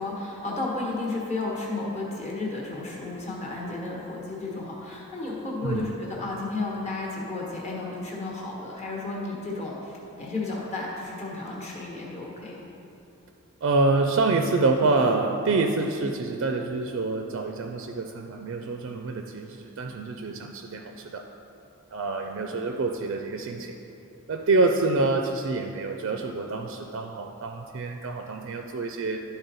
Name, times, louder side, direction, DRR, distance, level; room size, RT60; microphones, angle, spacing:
voice 1, 0.0-12.5, left 2 dB, 30° left, -4 dB, 1.2 m, -33 dB
voice 2, 13.6-21.3 21.9-23.8 24.3-29.2, right 3 dB, 55° right, 4 dB, 0.4 m, -26 dB
11.5 x 4.0 x 4.0 m, 2.8 s
head